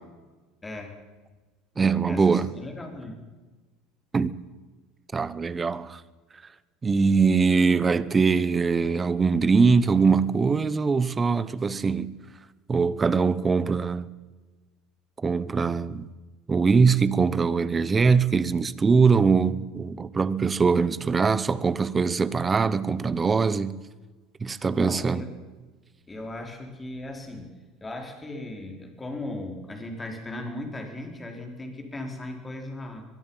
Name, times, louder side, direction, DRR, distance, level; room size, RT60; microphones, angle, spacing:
voice 1, 0.6-1.0 2.1-3.2 24.6-25.3 26.1-33.0, left 1 dB, 15° left, 4.5 m, -37 dB
voice 2, 1.8-2.5 4.1-4.3 5.1-6.0 6.8-12.2 12.7-14.1 15.2-16.1 16.5-23.8 24.4-25.2, right 5 dB, 15° right, 1.0 m, -22 dB
22.5 x 22.5 x 5.7 m
cardioid pair, 145°, 0 cm